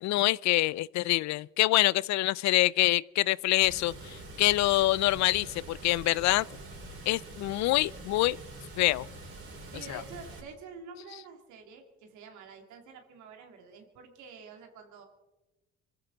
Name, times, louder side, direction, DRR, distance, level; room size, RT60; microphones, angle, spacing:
voice 1, 0.0-6.4 7.1-8.4 8.8-9.1 9.9-10.0, left 17 dB, 70° left, 0.4 m, -26 dB
Water, 3.6-10.4, right 2 dB, 50° right, 4.4 m, -45 dB
voice 2, 9.7-15.1, right 5 dB, 80° right, 2.4 m, -48 dB
25.0 x 15.0 x 3.9 m
supercardioid pair, 55°, 29 cm